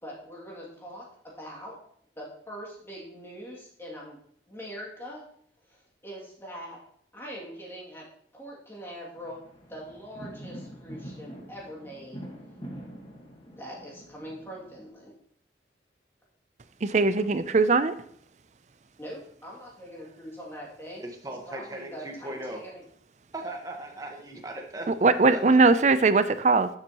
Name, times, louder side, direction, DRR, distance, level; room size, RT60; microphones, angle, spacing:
voice 1, 0.0-1.8 2.2-4.2 4.5-5.2 5.6-6.8 7.1-8.1 8.3-9.4 9.7-12.2 13.6-15.1 17.1-17.2 19.0-21.0 21.5-22.8, equal, 15° left, -4 dB, 2.4 m, -42 dB
sound 1, 9.2-14.9, equal, 30° left, 1.5 m, -44 dB
voice 2, 16.8-17.9 25.0-26.7, right 3 dB, 40° right, 13 dB, 0.5 m, -20 dB
voice 3, 21.2-22.6 23.3-24.8 25.3-25.4, right 1 dB, 20° right, 1 dB, 1.3 m, -38 dB
12.5 x 7.4 x 3.0 m, 0.67 s
head